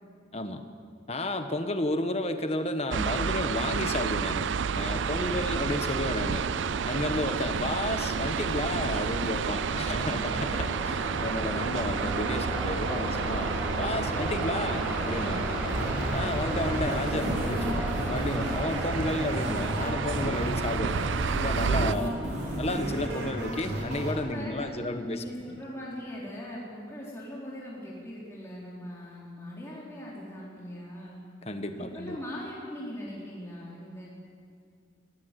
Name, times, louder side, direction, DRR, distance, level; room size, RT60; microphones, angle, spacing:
voice 1, 1.1-4.5 4.7-6.4 6.8-13.5 13.8-15.5 16.1-22.1 22.6-25.2 31.4-32.2, left 1 dB, 30° left, 7 dB, 1.3 m, -32 dB
sound 1, 2.9-21.9, right 6 dB, 75° right, 0.5 m, -31 dB
sound 2, 4.8-24.2, equal, 10° right, 5.8 m, -35 dB
voice 2, 5.2-5.6 9.7-10.5 24.3-31.2 31.8-34.1, equal, 15° left, -6 dB, 3.8 m, -41 dB
sound 3, 15.7-24.1, equal, 55° right, 3.8 m, -34 dB
21.5 x 17.5 x 8.3 m, 2.3 s
head